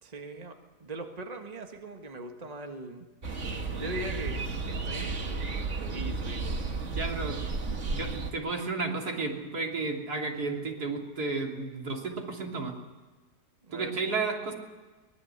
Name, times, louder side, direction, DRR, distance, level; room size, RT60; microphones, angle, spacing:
voice 1, 0.0-3.1 3.7-6.7 7.9-8.0 13.6-13.9, right 2 dB, 25° right, 4 dB, 1.7 m, -41 dB
sound 1, 3.2-8.3, right 3 dB, 50° right, 2.0 m, -33 dB
voice 2, 6.9-7.4 7.7-12.7 13.7-14.5, right 3 dB, 80° right, 1 dB, 3.6 m, -32 dB
23.5 x 20.5 x 8.1 m, 1.3 s
omnidirectional pair, 1.7 m